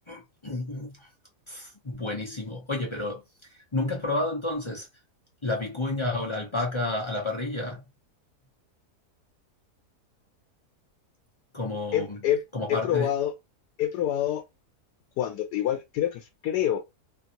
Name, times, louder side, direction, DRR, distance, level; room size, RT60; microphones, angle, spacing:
voice 1, 0.1-1.1 1.5-3.2 3.7-4.9 5.4-7.8 11.5-12.2 12.5-13.1, left 2 dB, 40° left, 0.4 m, -30 dB
voice 2, 11.9-12.4 12.7-13.3 13.8-14.4 15.2-16.8, left 11 dB, 90° left, 1.2 m, -26 dB
3.1 x 2.6 x 2.8 m
omnidirectional pair, 1.7 m